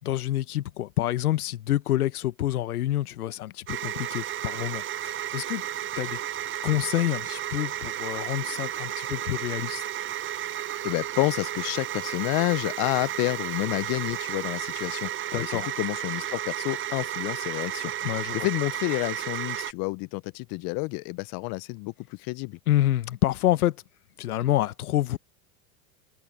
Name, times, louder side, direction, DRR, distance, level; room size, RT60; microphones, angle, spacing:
voice 1, 0.0-5.6 5.9-6.2 6.6-9.8 15.3-15.7 18.0-18.5 22.7-23.8 24.2-25.2, left 13 dB, 90° left, 1.1 m, -27 dB
sound 1, 3.7-19.7, right 11 dB, 30° right, 0.7 m, -33 dB
voice 2, 10.8-17.9 18.3-22.6, left 27 dB, 50° left, 0.7 m, -29 dB
open air
hypercardioid pair, 100°, 43 cm